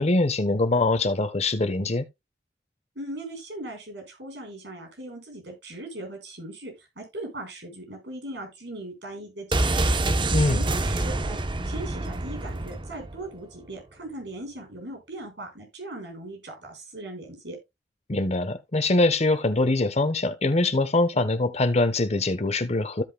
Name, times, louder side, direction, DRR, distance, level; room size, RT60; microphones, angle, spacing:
voice 1, 0.0-2.1 10.3-10.6 18.1-23.0, left 2 dB, 40° left, 1.0 m, -23 dB
voice 2, 3.0-11.4 11.6-17.6, right 1 dB, 75° right, 5.6 m, -39 dB
sound 1, 9.5-13.3 13.5-13.6, right 2 dB, 30° right, 0.8 m, -26 dB
15.0 x 5.5 x 2.2 m
head